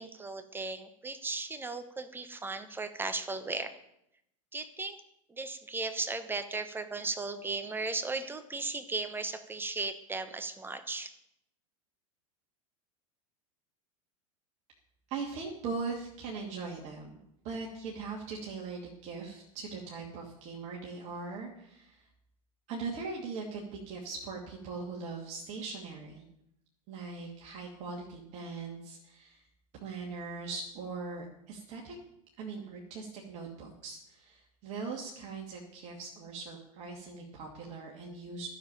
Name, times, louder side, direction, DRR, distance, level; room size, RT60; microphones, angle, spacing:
voice 1, 0.0-3.7 4.5-5.0 5.3-11.1, right 3 dB, 10° right, 10 dB, 1.2 m, -36 dB
voice 2, 15.1-17.2 17.4-22.1 22.7-26.3 26.9-29.4 29.7-32.0 32.4-38.5, right 4 dB, 40° right, -2 dB, 2.6 m, -40 dB
14.0 x 7.5 x 9.1 m, 0.79 s
figure-of-eight pair, 85°, 18 cm